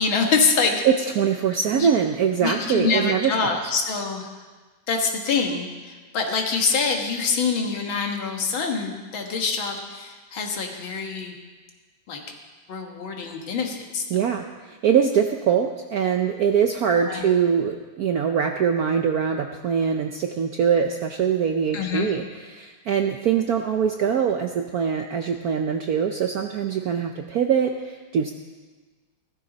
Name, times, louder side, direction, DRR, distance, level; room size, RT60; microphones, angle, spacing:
voice 1, 0.0-0.8 1.7-1.9 2.4-4.3 4.9-11.4 12.1-12.2 12.7-14.1 17.1-17.2 21.7-22.1, left 5 dB, 70° left, 3 dB, 2.2 m, -25 dB
voice 2, 0.8-3.6 14.1-28.3, right 7 dB, 70° right, 5 dB, 0.9 m, -23 dB
16.0 x 13.5 x 4.0 m, 1.3 s
omnidirectional pair, 2.3 m